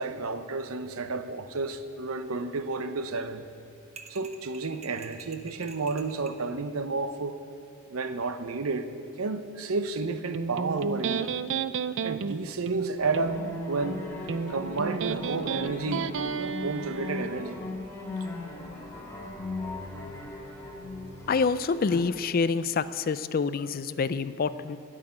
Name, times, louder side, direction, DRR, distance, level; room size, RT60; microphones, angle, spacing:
voice 1, 0.0-3.5 4.1-7.4 7.9-8.9 9.2-11.3 12.0-13.4 13.7-14.1 14.5-16.1 16.4-17.6, right 3 dB, 85° right, 10 dB, 0.8 m, -31 dB
sound 1, 4.0-6.4, right 5 dB, 30° right, 0.8 m, -47 dB
Electric guitar, 10.3-17.3, right 6 dB, 60° right, 0.4 m, -33 dB
sound 2, 13.0-22.1, left 2 dB, 15° left, 1.6 m, -38 dB
voice 2, 21.3-24.8, left 5 dB, 45° left, 14 dB, 0.4 m, -27 dB
12.5 x 6.6 x 9.7 m, 2.4 s
head